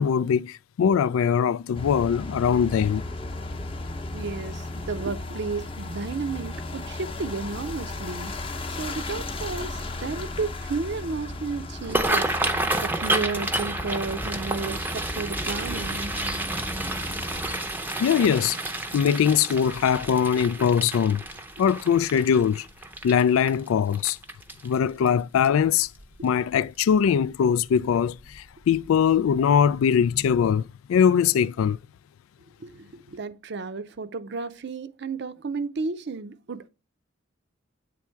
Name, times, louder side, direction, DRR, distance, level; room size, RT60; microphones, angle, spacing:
voice 1, 0.0-3.0 18.0-18.6 18.9-21.2 21.6-22.7 23.0-24.2 24.6-25.9 26.2-30.6 30.9-31.8, left 7 dB, 85° left, 0.3 m, -21 dB
sound 1, 1.7-17.6, left 2 dB, 25° left, 0.7 m, -35 dB
voice 2, 4.1-8.3 8.8-12.3 12.8-16.1 32.6-36.7, right 4 dB, 55° right, 0.5 m, -32 dB
sound 2, 11.8-24.9 25.4-25.7 26.0-26.4 26.8-27.0 28.2-28.4 28.7-28.9 29.3-29.4, right 2 dB, 10° right, 0.6 m, -30 dB
8.5 x 3.5 x 4.4 m
head